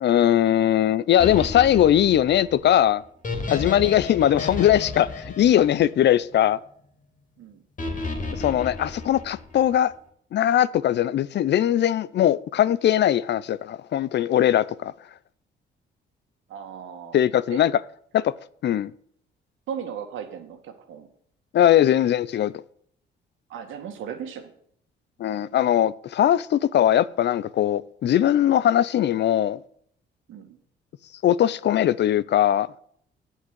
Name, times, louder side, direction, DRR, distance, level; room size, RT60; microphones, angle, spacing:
voice 1, 0.0-3.0 3.5-6.6 8.3-9.9 10.3-14.9 17.1-17.8 18.1-18.3 18.6-18.9 21.5-22.5 25.2-29.6 31.2-32.8, left 11 dB, 60° left, 0.6 m, -20 dB
sound 1, 1.2-6.5 7.8-9.7, left 3 dB, 40° left, 2.8 m, -33 dB
voice 2, 16.5-17.2 17.5-17.6 19.7-21.1 23.5-24.5 30.3-30.5, right 8 dB, 85° right, 2.1 m, -36 dB
8.6 x 7.4 x 8.1 m
cardioid pair, 90°, 20 cm